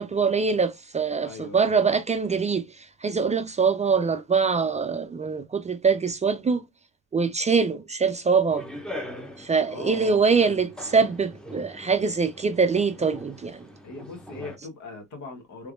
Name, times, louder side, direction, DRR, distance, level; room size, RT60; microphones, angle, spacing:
voice 1, 0.0-6.6 7.1-8.6 9.4-13.7, right 5 dB, 25° right, 0.3 m, -24 dB
voice 2, 1.2-1.8 9.7-11.0 13.8-15.7, left 3 dB, 75° left, 1.3 m, -40 dB
sound 1, 8.5-14.6, left 1 dB, 5° left, 0.7 m, -41 dB
3.4 x 3.1 x 2.4 m
cardioid pair, 90°, 30 cm